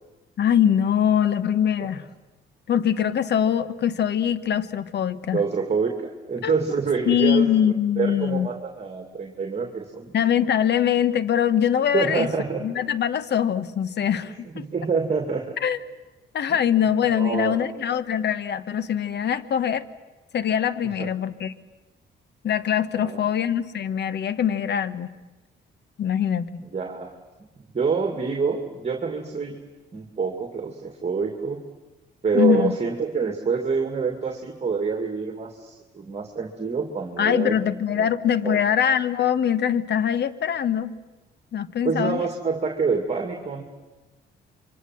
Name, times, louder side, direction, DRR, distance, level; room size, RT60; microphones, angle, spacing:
voice 1, 0.4-2.0 2.7-5.4 6.4-6.6 7.1-8.5 10.1-12.3 12.6-14.7 15.6-15.8 16.3-19.8 20.3-21.5 22.4-25.1 26.0-26.5 32.3-32.7 37.2-40.9 41.5-42.2, left 9 dB, 60° left, 15 dB, 1.2 m, -23 dB
voice 2, 5.3-10.1 11.9-12.6 14.3-15.5 16.5-16.6 17.1-17.6 21.0-21.1 23.0-23.2 26.6-27.2 27.7-29.6 29.9-31.6 32.2-37.5 37.9-38.1 38.4-38.6 41.8-43.6, right 5 dB, 30° right, 4 dB, 2.5 m, -27 dB
27.5 x 24.0 x 7.7 m, 1.1 s
cardioid pair, 90°, 20 cm